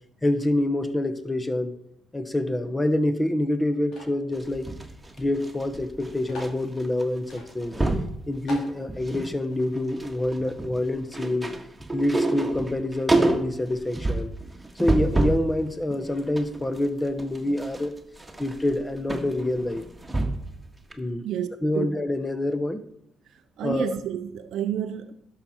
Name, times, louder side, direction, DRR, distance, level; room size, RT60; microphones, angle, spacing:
voice 1, 0.2-1.7 2.1-4.7 5.2-7.7 8.3-11.5 11.9-14.3 14.7-17.9 18.4-19.8 21.0-21.3 21.6-22.8 23.6-23.9, left 1 dB, 20° left, 1.1 m, -26 dB
sound 1, 3.9-4.2 5.1-5.2 5.5-5.6 6.3-6.6 7.3-7.5 7.9-8.0 8.5-8.8, left 1 dB, 70° left, 3.1 m, -40 dB
sound 2, 4.3-6.5 6.8-7.0 7.3-8.1 8.7-9.3 9.6-15.5 15.9-20.6 20.9-21.0, right 2 dB, 15° right, 1.6 m, -28 dB
voice 2, 21.2-21.9 23.6-25.1, right 9 dB, 70° right, 0.5 m, -30 dB
11.5 x 5.9 x 4.4 m
hypercardioid pair, 50°, 0 cm